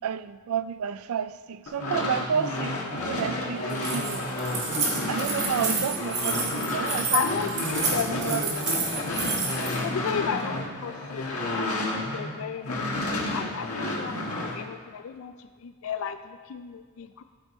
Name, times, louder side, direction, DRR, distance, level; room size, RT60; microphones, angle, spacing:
voice 1, 0.0-2.8 3.0-4.3 5.1-7.3 7.6-8.7, right 7 dB, 80° right, 0.3 m, -31 dB
sound 1, 1.7-12.3 12.6-14.6, left 2 dB, 90° left, 1.5 m, -30 dB
Keys jangling, 3.7-9.8, right 4 dB, 50° right, 1.8 m, -30 dB
voice 2, 7.1-8.9 9.8-17.2, left 7 dB, 65° left, 0.3 m, -34 dB
13.0 x 5.2 x 4.2 m
head